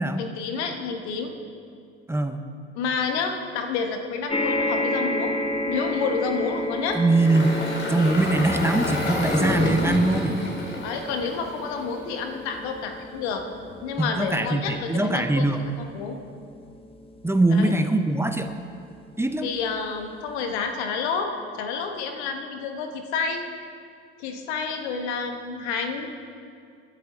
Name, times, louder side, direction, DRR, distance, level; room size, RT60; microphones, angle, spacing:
voice 1, 0.2-1.4 2.7-5.4 5.7-7.0 10.8-13.4 13.8-16.1 17.5-17.7 19.4-21.3 21.6-23.5 24.2-26.1, left 5 dB, 75° left, 5 dB, 1.5 m, -29 dB
sound 1, 4.3-18.9 19.6-19.7 20.0-20.1, left 1 dB, 15° left, 1.3 m, -32 dB
Engine, 6.9-12.2, left 1 dB, 35° left, 3.7 m, -29 dB
voice 2, 6.9-7.6 7.9-10.4 14.0-15.6 17.2-18.5 19.2-19.5, right 2 dB, 5° right, 7 dB, 1.0 m, -22 dB
21.0 x 10.5 x 4.0 m, 2.3 s
hypercardioid pair, 65°, 33 cm